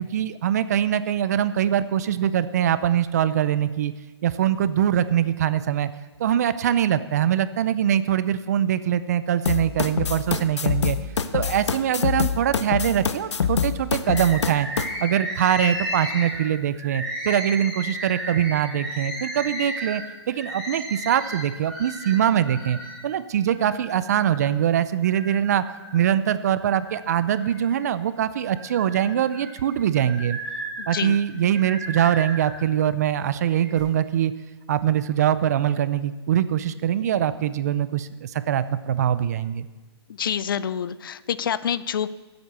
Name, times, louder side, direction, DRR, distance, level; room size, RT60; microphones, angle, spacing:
voice 1, 0.0-3.9 4.2-5.9 6.2-11.0 11.3-14.7 15.0-20.0 20.3-22.8 23.0-25.6 25.9-30.4 30.9-34.3 34.7-39.7, right 10 dB, 35° right, 14 dB, 0.5 m, -23 dB
sound 1, 9.5-14.9, left 7 dB, 85° left, 0.9 m, -25 dB
Bird, 14.1-23.0 23.5-24.5 25.0-26.0 26.5-27.9 28.3-32.6 33.3-33.8, equal, 5° left, 4.2 m, -34 dB
voice 2, 30.8-31.2 40.2-42.1, left 8 dB, 50° left, 17 dB, 0.5 m, -27 dB
14.0 x 8.0 x 6.8 m, 1.2 s
hypercardioid pair, 165°, 14 cm